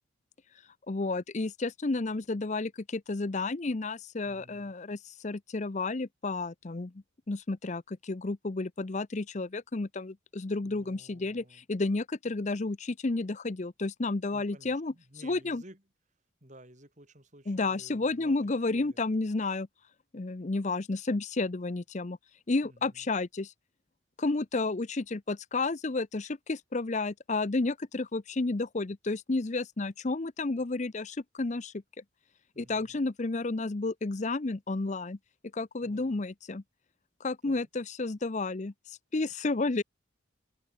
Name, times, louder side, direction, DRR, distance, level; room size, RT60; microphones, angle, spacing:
voice 1, 0.9-6.9 7.3-14.9 15.2-15.6 17.5-19.7 20.1-22.2 22.5-23.5 24.2-31.7 32.6-35.2 35.5-36.6 37.2-39.8, left 3 dB, 35° left, 0.6 m, -31 dB
voice 2, 4.2-4.7 10.6-11.6 14.3-15.8 16.4-19.0 22.6-23.1 32.5-33.0 35.8-36.2 37.4-37.7, right 1 dB, 40° right, 6.9 m, -55 dB
head